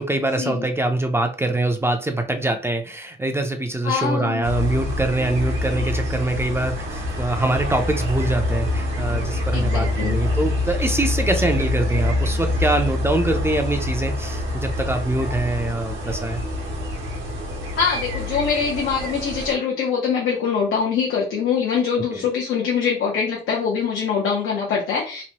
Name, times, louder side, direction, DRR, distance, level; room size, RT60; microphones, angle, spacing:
voice 1, 0.0-16.4 22.1-22.3, right 2 dB, 10° right, 5 dB, 0.4 m, -24 dB
voice 2, 3.8-4.5 9.5-10.2 17.7-25.2, left 6 dB, 85° left, -3 dB, 0.7 m, -23 dB
sound 1, 4.4-19.5, left 2 dB, 80° right, 0.9 m, -25 dB
3.0 x 2.1 x 2.8 m, 0.38 s
cardioid pair, 90°, 20 cm